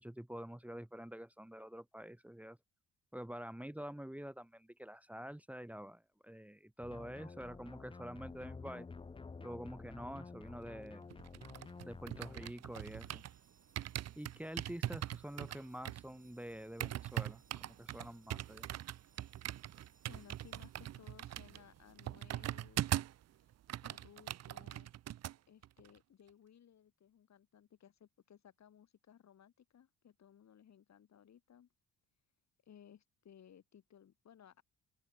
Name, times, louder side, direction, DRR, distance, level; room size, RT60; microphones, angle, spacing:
voice 1, 0.0-2.6 3.1-8.9 9.4-11.1 11.8-13.2 14.2-18.7, equal, 5° right, 2.1 m, -47 dB
sound 1, 6.8-12.5, left 4 dB, 15° left, 0.6 m, -51 dB
sound 2, 11.1-13.4 13.8-23.2 23.5-25.4 25.6-25.9, right 12 dB, 55° right, 0.6 m, -41 dB
sound 3, 12.8-21.4, right 4 dB, 25° right, 7.3 m, -72 dB
voice 2, 20.1-22.9 23.4-23.5 23.8-24.9 25.5-31.7 32.6-34.6, left 9 dB, 55° left, 4.0 m, -61 dB
open air
cardioid pair, 90°, 32 cm